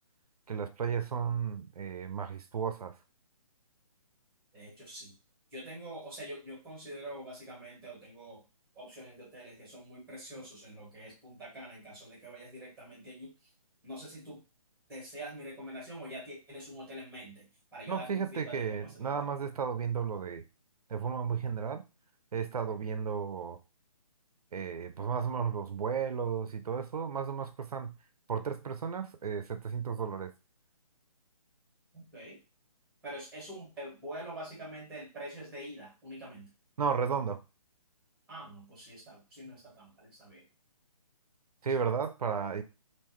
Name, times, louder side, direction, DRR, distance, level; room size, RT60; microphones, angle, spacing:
voice 1, 0.5-2.9 17.9-20.4 20.9-21.8 22.3-23.6 24.5-28.0 28.3-30.3 36.8-37.4 41.6-42.6, right 6 dB, 80° right, 9 dB, 0.5 m, -33 dB
voice 2, 4.5-5.1 5.5-8.4 8.7-13.3 13.8-14.4 14.9-17.4 17.7-19.1 31.9-32.4 33.0-36.5 38.3-40.4 41.8-41.9, right 1 dB, ahead, -4 dB, 1.4 m, -45 dB
3.6 x 2.6 x 3.0 m, 0.29 s
hypercardioid pair, 175°, 19 cm